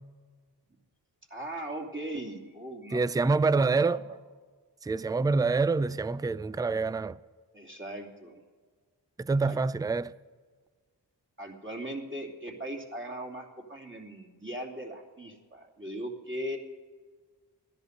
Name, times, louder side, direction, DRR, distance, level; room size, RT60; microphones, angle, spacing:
voice 1, 1.3-4.2 7.5-8.4 9.4-9.6 11.4-16.6, right 1 dB, 30° right, 2.9 m, -39 dB
voice 2, 2.9-4.0 4.8-7.2 9.2-10.1, right 3 dB, 10° right, 0.3 m, -26 dB
14.5 x 10.5 x 6.5 m
cardioid pair, 60°, 42 cm